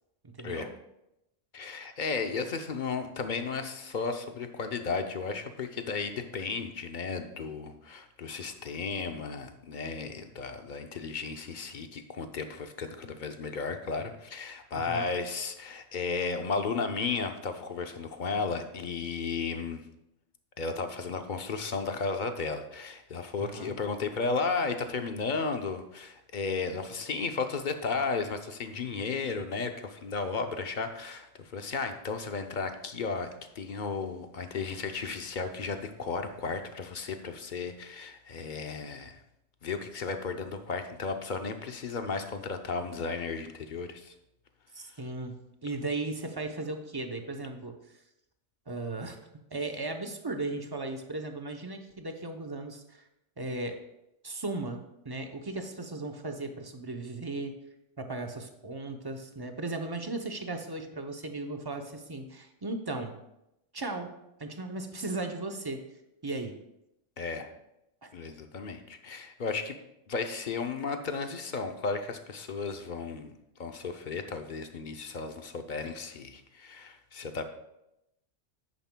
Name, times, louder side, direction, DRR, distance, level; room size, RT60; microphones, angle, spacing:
voice 1, 0.4-0.7 14.7-15.1 23.4-23.7 44.7-47.7 48.7-49.2 49.5-53.0 53.4-53.8 54.2-57.6 58.0-63.2 63.7-64.1 64.4-65.8 66.2-66.5 68.0-68.1, right 2 dB, 25° right, 5 dB, 0.6 m, -36 dB
voice 2, 1.5-19.8 20.6-33.3 33.5-39.2 39.6-44.1 67.2-67.5 68.1-69.8 70.1-73.3 73.6-77.4, left 4 dB, 50° left, 7 dB, 0.7 m, -34 dB
10.5 x 9.1 x 2.2 m, 0.87 s
omnidirectional pair, 1.2 m